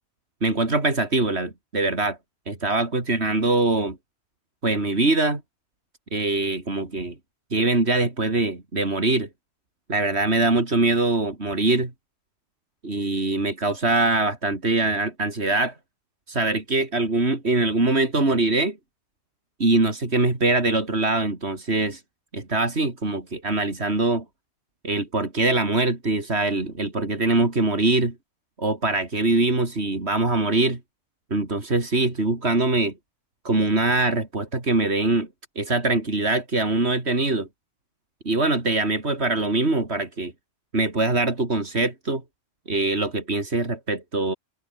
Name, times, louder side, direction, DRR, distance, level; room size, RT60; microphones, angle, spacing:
voice 1, 0.4-2.2 2.5-4.0 4.6-5.4 6.1-7.2 7.5-9.3 9.9-11.9 12.8-15.8 16.3-18.8 19.6-22.0 22.3-24.2 24.8-28.1 28.6-30.8 31.3-32.9 33.4-35.3 35.6-37.5 38.3-40.3 40.7-42.2 42.7-44.3, right 2 dB, 80° right, 4.2 m, -23 dB
open air
omnidirectional pair, 1.1 m